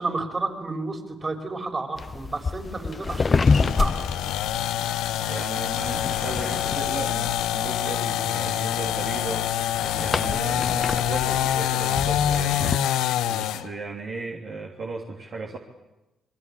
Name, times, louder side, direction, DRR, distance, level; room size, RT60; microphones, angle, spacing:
voice 1, 0.0-4.1, right 3 dB, 35° right, 4 dB, 6.2 m, -31 dB
sound 1, 2.0-12.8, left 4 dB, 40° left, 0.9 m, -29 dB
sound 2, 3.4-13.7, left 11 dB, 75° left, 1.0 m, -26 dB
voice 2, 5.3-9.5 9.9-12.7 13.3-15.6, right 3 dB, 55° right, -1 dB, 3.2 m, -35 dB
28.0 x 22.0 x 8.8 m, 0.99 s
hypercardioid pair, 45°, 0 cm